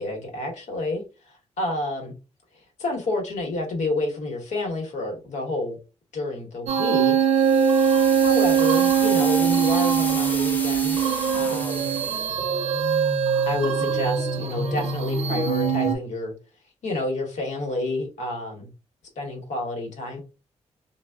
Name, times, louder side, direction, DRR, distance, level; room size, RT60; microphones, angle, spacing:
voice 1, 0.0-2.1 2.8-5.8 6.1-7.2 8.2-11.9 13.5-16.3 16.8-18.7 19.2-20.2, left 2 dB, 80° left, 1 dB, 1.0 m, -29 dB
sound 1, 6.7-16.0, right 7 dB, 65° right, 0.5 m, -22 dB
sound 2, 7.3-12.4, left 1 dB, 15° left, 0.5 m, -34 dB
3.2 x 2.1 x 2.2 m, 0.31 s
cardioid pair, 85°, 12 cm